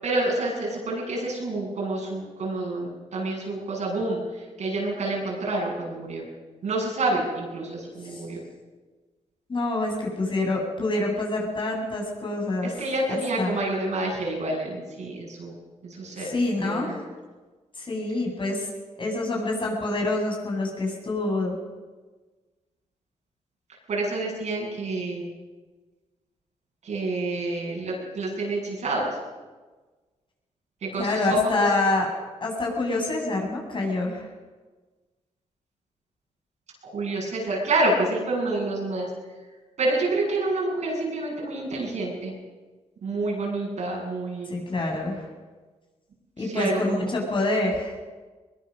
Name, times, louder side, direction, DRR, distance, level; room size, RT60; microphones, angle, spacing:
voice 1, 0.0-6.3 6.6-8.4 12.6-15.6 15.8-16.3 16.6-17.0 23.9-25.3 26.8-29.2 30.8-31.7 36.8-39.1 39.8-42.3 43.0-44.5 46.4-47.1, right 2 dB, 70° right, -2 dB, 7.7 m, -28 dB
voice 2, 9.5-12.7 13.1-13.5 16.2-16.9 17.8-18.7 19.0-21.5 31.0-32.1 32.4-34.3 44.5-45.3 46.4-47.9, left 2 dB, 40° left, -1 dB, 7.4 m, -26 dB
21.5 x 21.0 x 6.6 m, 1.3 s
cardioid pair, 80°, 12 cm